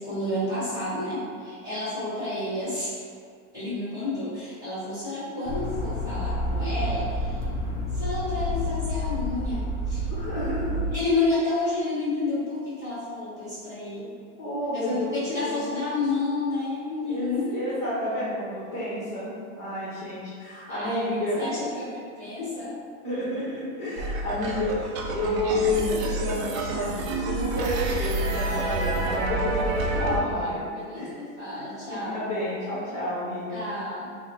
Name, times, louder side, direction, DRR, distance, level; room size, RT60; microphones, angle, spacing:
voice 1, 0.0-3.0 3.5-7.5 7.9-10.1 10.9-14.1 14.7-17.6 20.7-22.8 29.9-32.3 33.5-34.2, left 2 dB, 10° right, -13 dB, 1.3 m, -30 dB
sound 1, 5.5-11.0, left 1 dB, 65° left, 0.7 m, -29 dB
voice 2, 10.1-10.8 14.4-15.1 15.4-15.6 17.0-19.3 19.6-21.5 23.0-30.6 30.9-31.1 31.5-33.6, left 1 dB, 35° left, -9 dB, 0.9 m, -30 dB
sound 2, 24.0-30.2, right 2 dB, 75° right, 0.6 m, -28 dB
3.9 x 2.0 x 2.8 m, 2.1 s
supercardioid pair, 155°, 41 cm